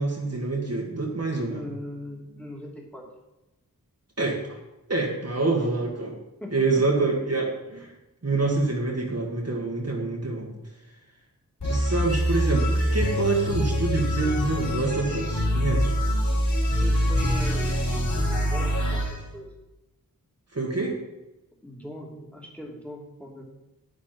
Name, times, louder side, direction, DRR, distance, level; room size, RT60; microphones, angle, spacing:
voice 1, 0.0-1.6 4.2-4.6 4.9-6.1 6.5-7.9 8.2-10.5 11.6-16.0 20.5-21.0, right 3 dB, 45° right, -2 dB, 1.9 m, -26 dB
voice 2, 1.5-3.1 5.5-5.7 6.4-7.1 16.7-19.5 21.6-23.4, equal, 5° left, -1 dB, 2.9 m, -40 dB
sound 1, 11.6-19.1, equal, 60° left, 4.3 m, -24 dB
10.5 x 9.7 x 4.6 m, 0.97 s
wide cardioid pair, 85°, 35 cm